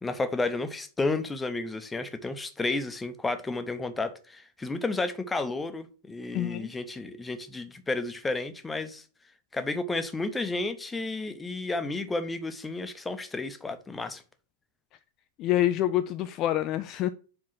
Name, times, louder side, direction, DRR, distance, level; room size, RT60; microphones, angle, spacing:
voice 1, 0.0-9.0 9.5-14.2, left 3 dB, 10° left, 0.8 m, -32 dB
voice 2, 6.3-6.7 15.4-17.1, left 13 dB, 35° left, 0.4 m, -26 dB
4.9 x 4.6 x 5.6 m
figure-of-eight pair, 90°, 0 cm